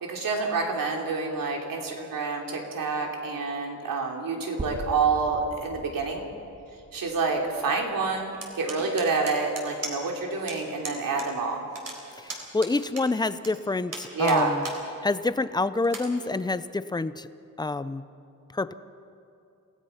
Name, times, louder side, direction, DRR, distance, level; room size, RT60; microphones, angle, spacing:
voice 1, 0.0-6.3 6.9-11.6 14.1-14.5, right 4 dB, 80° right, 1 dB, 3.2 m, -28 dB
sound 1, 4.6-8.5, right 2 dB, 20° right, 1.6 m, -41 dB
sound 2, 8.4-10.2 10.5-10.6 10.8-11.3 11.5-13.5 13.9-14.8 15.2-15.3 15.8-16.1, right 3 dB, 50° right, 3.8 m, -37 dB
voice 2, 12.2-14.7 15.0-17.3 17.6-18.0 18.5-18.7, left 3 dB, 15° left, 14 dB, 0.5 m, -27 dB
27.5 x 17.5 x 5.7 m, 2.6 s
wide cardioid pair, 150°, 33 cm